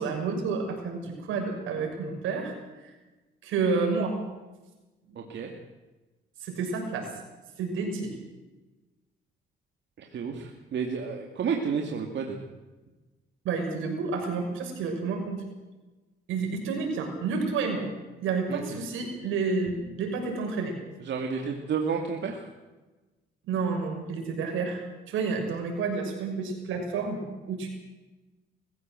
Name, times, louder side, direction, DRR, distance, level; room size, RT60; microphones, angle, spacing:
voice 1, 0.0-2.9 3.4-4.2 6.4-7.1 7.6-8.1 13.4-15.4 16.3-17.9 18.2-20.8 23.4-24.8 25.1-27.7, right 4 dB, 85° right, 3 dB, 6.3 m, -30 dB
voice 2, 5.1-5.5 10.0-12.4 18.5-18.8 21.0-22.5, right 6 dB, 65° right, 2 dB, 2.7 m, -31 dB
21.0 x 16.0 x 7.8 m, 1.1 s
cardioid pair, 90°, 20 cm